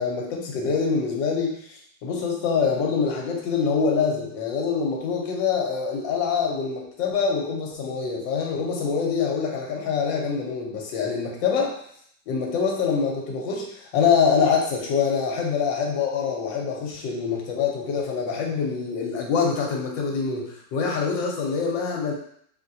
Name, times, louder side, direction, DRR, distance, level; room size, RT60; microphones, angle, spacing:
voice 1, 0.0-11.8 12.3-22.1, left 5 dB, 80° left, 0 dB, 1.4 m, -25 dB
3.3 x 2.8 x 2.6 m, 0.66 s
omnidirectional pair, 2.0 m